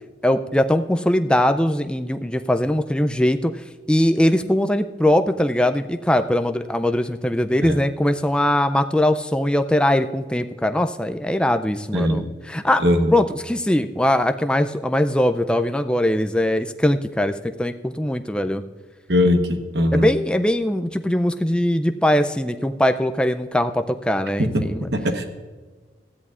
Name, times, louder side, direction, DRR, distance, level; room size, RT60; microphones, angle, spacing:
voice 1, 0.2-12.8 13.1-18.6 19.9-24.9, left 1 dB, 5° left, 8 dB, 0.4 m, -21 dB
voice 2, 11.9-12.3 12.8-13.1 19.1-20.1 24.4-25.3, left 1 dB, 60° right, 6 dB, 1.2 m, -20 dB
19.0 x 13.5 x 2.5 m, 1.4 s
head